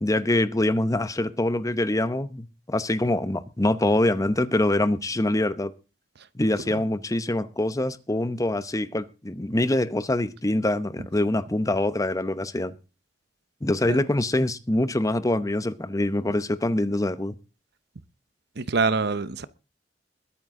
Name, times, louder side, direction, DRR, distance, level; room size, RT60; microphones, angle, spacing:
voice 1, 0.0-5.7 6.4-12.8 13.6-17.3, left 1 dB, 20° left, 0.8 m, -24 dB
voice 2, 18.6-19.5, right 4 dB, 65° right, 0.8 m, -25 dB
21.5 x 9.2 x 3.7 m
head